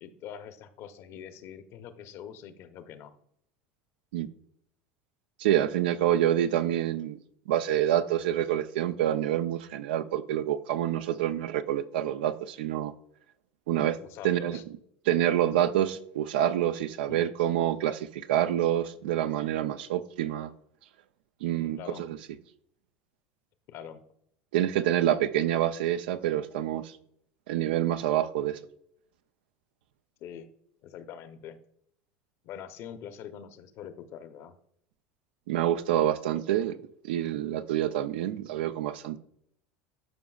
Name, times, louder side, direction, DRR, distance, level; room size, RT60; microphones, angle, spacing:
voice 1, 0.0-3.1 14.0-14.6 17.1-17.3 21.8-22.0 23.7-24.0 30.2-30.5 30.8-31.6 32.4-34.5, left 8 dB, 55° left, 0.8 m, -44 dB
voice 2, 5.4-7.2 7.5-12.9 13.7-14.0 14.2-14.6 15.1-20.5 21.4-22.2 24.5-26.9 27.5-28.6 35.5-36.8 37.0-39.2, right 11 dB, 85° right, 0.5 m, -27 dB
12.0 x 5.2 x 2.4 m
supercardioid pair, 105°, 5 cm